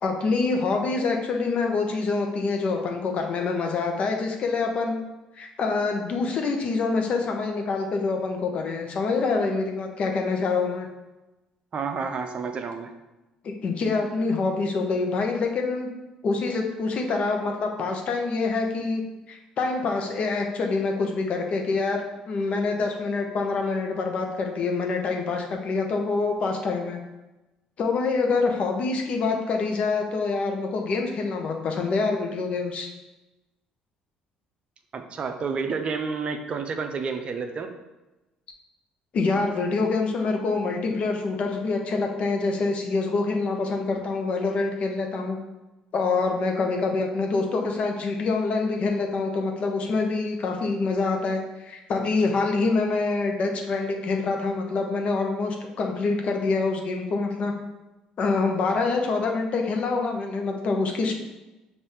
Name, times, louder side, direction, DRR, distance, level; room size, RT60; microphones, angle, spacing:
voice 1, 0.0-5.0 5.3-10.9 13.4-15.9 16.2-19.0 19.3-22.0 22.3-27.0 27.8-32.9 39.1-45.4 45.9-57.5 58.2-61.1, left 4 dB, 55° left, 2 dB, 0.8 m, -26 dB
voice 2, 11.7-12.9 34.9-37.7, right 5 dB, 45° right, 6 dB, 0.5 m, -30 dB
5.3 x 2.6 x 3.3 m, 1.0 s
supercardioid pair, 65°, 3 cm